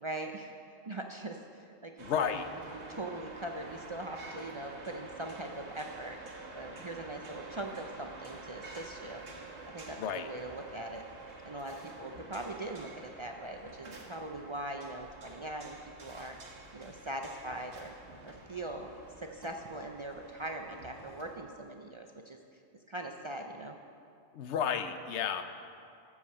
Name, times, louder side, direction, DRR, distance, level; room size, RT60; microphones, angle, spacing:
voice 1, 0.0-0.6 0.9-2.4 2.9-6.2 6.5-9.2 9.7-11.0 11.5-16.4 16.7-17.9 18.2-18.9 19.2-22.4 22.9-23.8, right 1 dB, 40° right, 3 dB, 0.4 m, -41 dB
voice 2, 2.0-2.5 10.0-10.3 24.3-25.4, left 7 dB, 85° left, 9 dB, 0.9 m, -32 dB
sound 1, 2.0-21.4, right 3 dB, 80° right, 1.6 m, -49 dB
14.0 x 4.9 x 7.2 m, 2.5 s
omnidirectional pair, 1.1 m